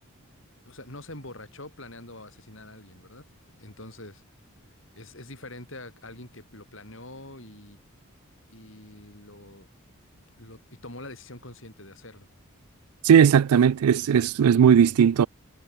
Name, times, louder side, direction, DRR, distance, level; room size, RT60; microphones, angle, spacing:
voice 1, 0.6-3.2 3.6-4.2 5.0-7.8 8.5-9.7 10.4-12.3 13.9-14.1, left 2 dB, 55° left, 6.2 m, -44 dB
voice 2, 13.0-15.3, right 8 dB, 85° right, 0.3 m, -17 dB
head